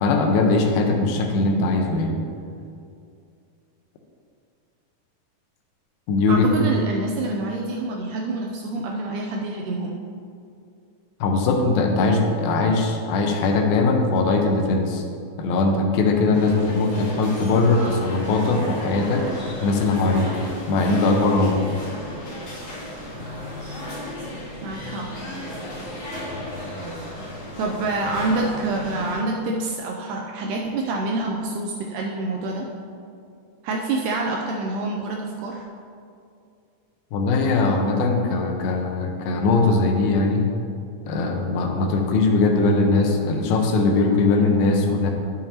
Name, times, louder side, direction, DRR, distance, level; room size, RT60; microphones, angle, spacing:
voice 1, 0.0-2.2 6.1-6.5 11.2-15.0 15.4-21.6 37.1-40.5 41.1-45.1, left 3 dB, 85° left, 3 dB, 2.6 m, -20 dB
voice 2, 6.3-10.0 24.6-25.1 27.6-32.7 33.6-35.7, right 2 dB, 80° right, 0 dB, 1.9 m, -27 dB
sound 1, 16.3-29.2, left 1 dB, 45° left, 2.9 m, -34 dB
11.0 x 7.0 x 2.8 m, 2.4 s
omnidirectional pair, 4.1 m